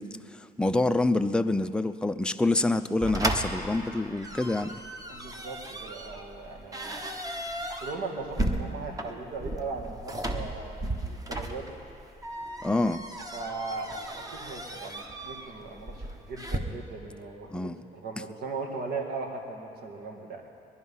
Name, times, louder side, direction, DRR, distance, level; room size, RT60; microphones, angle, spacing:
voice 1, 0.0-4.8 12.6-13.0 17.5-17.8, left 2 dB, 5° left, 9 dB, 0.5 m, -27 dB
sound 1, 3.0-16.6, right 1 dB, 20° right, 1.2 m, -35 dB
voice 2, 5.1-7.1 7.8-11.8 13.3-20.4, right 3 dB, 70° right, 1 dB, 2.2 m, -38 dB
21.5 x 11.0 x 5.6 m, 2.6 s
cardioid pair, 110°, 17 cm